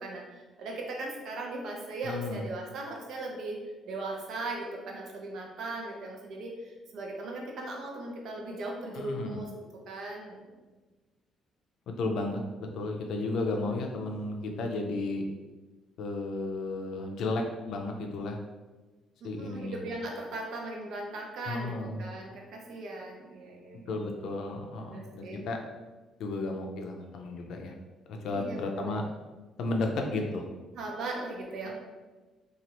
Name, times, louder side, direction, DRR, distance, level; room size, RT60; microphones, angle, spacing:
voice 1, 0.0-3.6 3.9-9.5 9.9-10.6 19.4-24.0 24.8-25.4 28.3-28.9 30.7-31.7, right 2 dB, 65° right, 0 dB, 0.6 m, -38 dB
voice 2, 2.0-2.4 8.9-9.4 11.9-15.2 16.0-18.4 19.2-19.8 21.5-22.0 23.9-25.6 26.2-27.7 28.1-29.0 29.6-30.5, left 2 dB, 70° left, 3 dB, 0.5 m, -33 dB
2.9 x 2.4 x 2.9 m, 1.2 s
cardioid pair, 105°, 0 cm